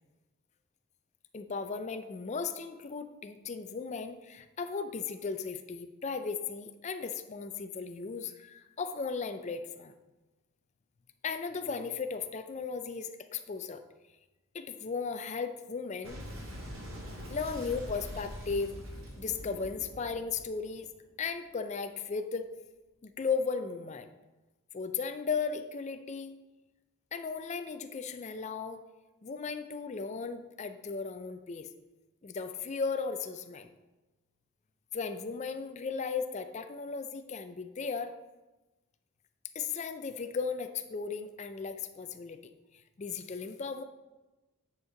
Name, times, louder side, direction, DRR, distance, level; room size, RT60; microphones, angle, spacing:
voice 1, 1.3-9.9 11.2-13.8 14.5-16.2 17.3-18.7 19.2-20.9 21.2-22.5 23.0-24.1 24.7-26.3 27.1-28.8 29.2-31.7 32.2-33.7 34.9-38.1 39.5-42.5 43.0-43.8, left 5 dB, 30° left, 9 dB, 0.4 m, -36 dB
Boom, 16.0-21.3, equal, 70° right, 1.6 m, -43 dB
9.7 x 4.4 x 3.8 m, 1.1 s
head